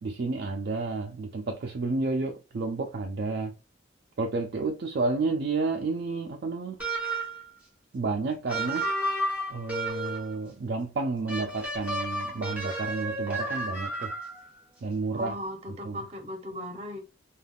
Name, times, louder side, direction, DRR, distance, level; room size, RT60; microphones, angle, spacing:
voice 1, 0.0-3.5 4.2-6.8 7.9-8.8 9.5-14.1 14.8-15.3 15.8-16.0, right 3 dB, 60° right, 0.4 m, -31 dB
sound 1, 6.8-7.5 8.5-10.3 11.3-14.5, right 1 dB, 10° right, 1.0 m, -32 dB
voice 2, 15.1-17.0, equal, 35° right, 0.8 m, -37 dB
3.4 x 2.3 x 2.3 m
head